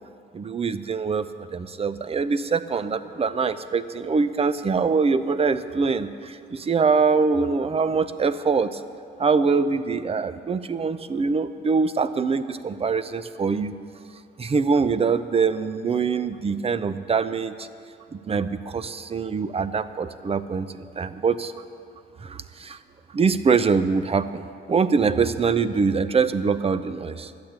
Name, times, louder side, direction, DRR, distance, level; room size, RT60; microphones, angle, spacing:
voice 1, 0.3-8.8 9.2-13.7 14.4-17.7 18.1-21.5 22.2-22.8 23.1-27.3, right 5 dB, 30° right, 13 dB, 0.6 m, -24 dB
12.0 x 8.7 x 8.0 m, 2.4 s
cardioid pair, 90°, 20 cm